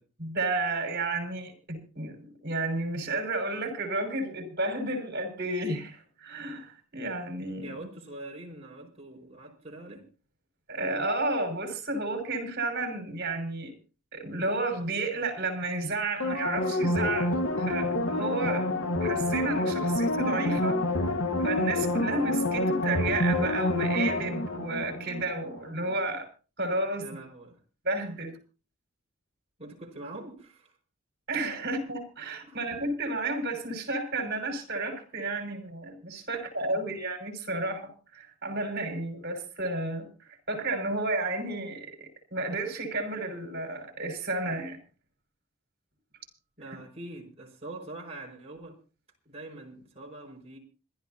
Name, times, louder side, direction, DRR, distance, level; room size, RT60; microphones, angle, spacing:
voice 1, 0.2-7.7 10.7-13.7 14.1-18.7 19.0-20.8 21.4-26.3 26.6-27.1 27.8-28.3 31.3-44.8, right 2 dB, 50° right, 5.7 m, -32 dB
voice 2, 7.6-10.1 27.0-27.6 29.6-30.8 32.4-32.7 36.3-36.4 46.6-48.8 49.3-50.6, right 2 dB, 30° right, 5.3 m, -44 dB
sound 1, 16.2-25.6 25.9-26.0, left 1 dB, 75° left, 1.7 m, -28 dB
26.5 x 12.5 x 2.9 m
head